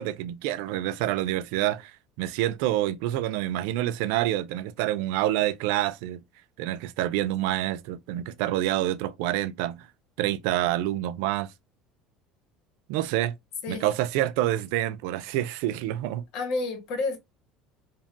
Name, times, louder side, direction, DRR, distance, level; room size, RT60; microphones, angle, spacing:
voice 1, 0.0-1.9 2.2-6.2 6.6-9.8 10.2-11.5 12.9-13.3 13.7-16.2, right 14 dB, 80° right, 0.3 m, -27 dB
voice 2, 16.3-17.2, left 3 dB, 65° left, 1.2 m, -30 dB
2.9 x 2.3 x 2.6 m
cardioid pair, 135°, 0 cm